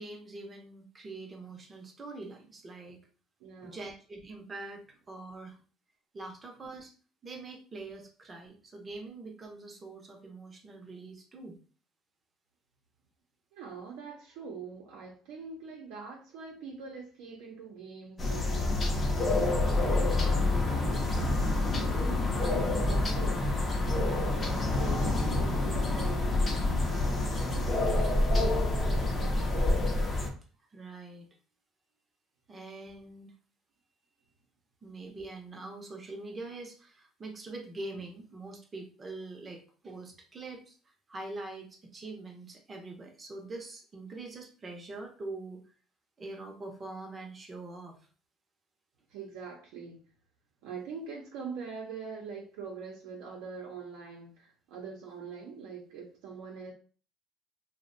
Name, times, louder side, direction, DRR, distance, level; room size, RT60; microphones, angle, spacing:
voice 1, 0.0-3.0 3.6-5.6 6.1-6.9 7.2-11.6 21.9-22.0 24.4-24.5 30.7-31.3 32.5-33.3 34.8-40.8 41.1-45.6 46.2-48.0, right 2 dB, 25° right, 3 dB, 0.5 m, -44 dB
voice 2, 3.4-3.8 13.5-23.5 24.0-29.6 49.1-50.0 50.6-56.7, right 5 dB, 85° right, -1 dB, 0.5 m, -43 dB
sound 1, 18.2-30.3, left 2 dB, 25° left, 0.5 m, -27 dB
2.5 x 2.0 x 2.5 m, 0.39 s
cardioid pair, 130°, 0 cm